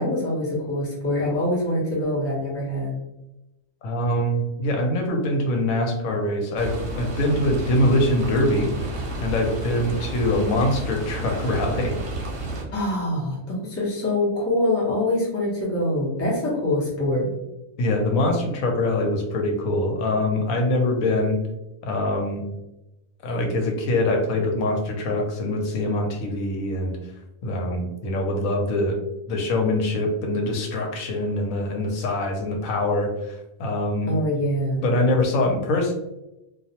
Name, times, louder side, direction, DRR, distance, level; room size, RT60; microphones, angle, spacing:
voice 1, 0.0-2.9 12.7-17.3 34.0-34.8, left 1 dB, 15° left, -5 dB, 0.5 m, -24 dB
voice 2, 3.8-8.7 9.2-11.9 17.8-21.4 21.8-22.4 23.2-27.0 27.4-29.0 29.3-34.1 34.8-35.9, left 1 dB, 85° left, 2 dB, 1.0 m, -23 dB
sound 1, 6.6-12.6, right 1 dB, 60° right, 0.9 m, -31 dB
2.4 x 2.0 x 2.7 m, 0.93 s
omnidirectional pair, 1.4 m